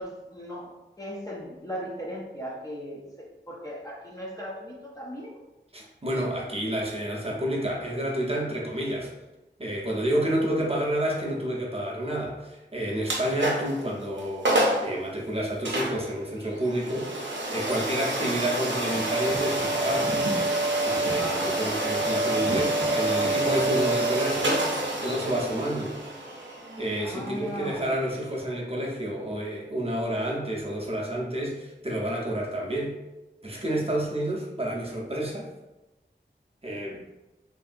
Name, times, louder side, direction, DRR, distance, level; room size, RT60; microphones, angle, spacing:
voice 1, 0.0-5.4 21.1-21.7 27.0-28.0, equal, 20° left, -3 dB, 0.5 m, -38 dB
voice 2, 5.7-9.1 9.6-17.1 17.5-20.2 20.8-24.7 25.0-25.9 26.8-33.0 33.4-35.5 36.6-37.0, right 1 dB, 30° right, -3 dB, 0.6 m, -29 dB
sound 1, 13.0-13.8 14.2-14.3 14.4-14.9 15.6-28.4, right 1 dB, 75° right, 0.6 m, -28 dB
2.7 x 2.6 x 2.4 m, 1.0 s
wide cardioid pair, 50°, 19 cm